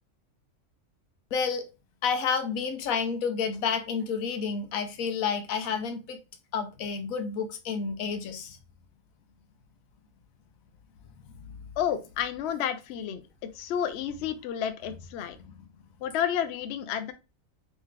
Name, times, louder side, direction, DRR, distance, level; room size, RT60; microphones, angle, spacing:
voice 1, 1.3-1.6 2.0-6.2 6.5-8.6 11.2-11.5 15.4-15.5, left 6 dB, 85° left, 1.1 m, -30 dB
voice 2, 11.8-15.4 16.0-17.1, left 9 dB, 65° left, 0.7 m, -31 dB
3.5 x 3.2 x 3.2 m
omnidirectional pair, 1.4 m